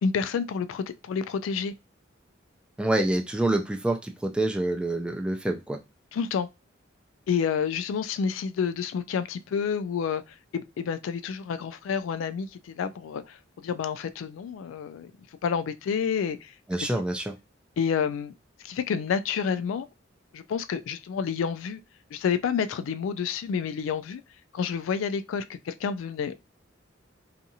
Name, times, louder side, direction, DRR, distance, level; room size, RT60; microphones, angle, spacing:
voice 1, 0.0-1.7 6.1-6.5 7.3-10.2 10.5-15.1 15.4-16.5 17.8-18.3 18.6-19.9 20.3-21.8 22.1-24.2 24.5-26.3, left 6 dB, 85° left, 0.3 m, -29 dB
voice 2, 2.8-5.8 16.7-17.3, right 1 dB, 5° right, 0.3 m, -27 dB
2.7 x 2.4 x 2.6 m
head